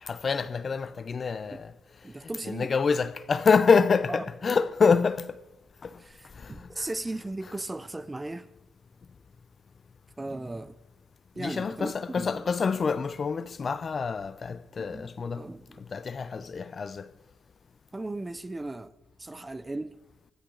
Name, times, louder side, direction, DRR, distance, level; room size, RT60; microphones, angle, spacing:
voice 1, 0.0-1.7 2.4-5.4 5.8-5.9 6.4-6.9 11.4-15.4 15.9-17.1, left 5 dB, 40° left, 0.6 m, -26 dB
voice 2, 2.0-2.7 4.1-4.6 5.0-5.1 6.0-8.5 10.2-10.8 11.3-12.4 14.8-15.8 17.9-18.9 19.2-20.0, right 2 dB, 15° right, 0.6 m, -37 dB
21.0 x 13.0 x 3.9 m
cardioid pair, 90°, 0 cm